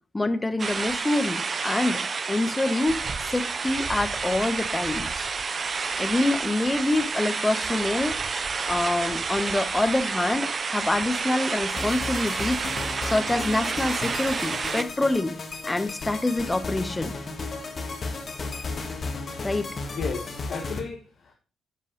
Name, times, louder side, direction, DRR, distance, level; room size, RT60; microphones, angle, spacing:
voice 1, 0.1-5.3 6.0-8.2 8.7-12.6 13.0-15.3 15.6-17.2 19.4-19.7, left 2 dB, 20° left, 1.1 m, -26 dB
sound 1, 0.6-14.8, right 5 dB, 45° right, 0.8 m, -30 dB
sound 2, 11.7-20.8, left 3 dB, 45° left, 1.7 m, -34 dB
voice 2, 19.9-21.3, left 5 dB, 65° left, 1.5 m, -34 dB
10.5 x 5.2 x 5.2 m
hypercardioid pair, 45°, 0 cm